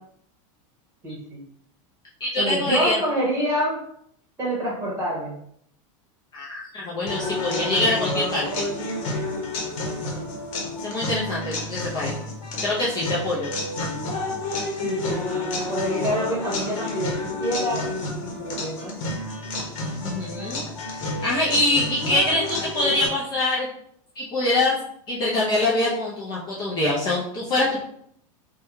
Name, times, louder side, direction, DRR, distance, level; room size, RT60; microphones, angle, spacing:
voice 1, 1.0-1.4 2.4-3.8 4.4-5.3 14.8-17.1 17.4-18.9, equal, 15° right, -4 dB, 1.2 m, -27 dB
voice 2, 2.2-3.0 6.3-8.6 10.8-12.1 12.6-13.5 20.0-20.6 20.9-23.7 24.2-24.8 25.1-27.8, left 2 dB, 25° left, -6 dB, 0.5 m, -24 dB
sound 1, 7.1-23.1, left 2 dB, 60° left, 1.0 m, -30 dB
3.4 x 2.2 x 3.0 m, 0.68 s
supercardioid pair, 160°, 18 cm